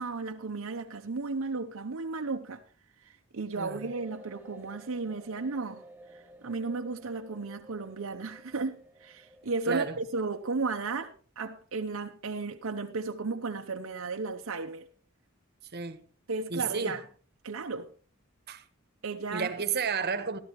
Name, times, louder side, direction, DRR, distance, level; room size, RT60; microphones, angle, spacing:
voice 1, 0.0-2.6 3.0-5.8 6.1-14.9 16.3-17.0 17.4-17.9 19.0-19.5, right 3 dB, 75° right, 0.8 m, -34 dB
sound 1, 3.6-10.5, equal, 10° right, 0.7 m, -52 dB
voice 2, 9.7-10.0 15.7-16.1 16.5-17.0 18.5-18.6 19.3-20.4, right 5 dB, 50° right, 1.1 m, -32 dB
14.5 x 12.5 x 3.1 m
head